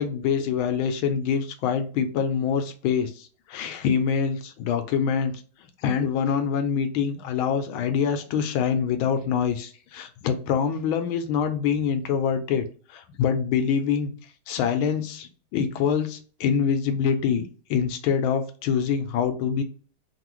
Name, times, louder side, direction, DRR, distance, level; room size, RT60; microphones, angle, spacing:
voice 1, 0.0-5.4 5.8-12.6 12.9-14.1 14.5-19.6, left 7 dB, 75° left, 7 dB, 1.4 m, -25 dB
3.7 x 2.3 x 3.0 m, 0.38 s
omnidirectional pair, 2.3 m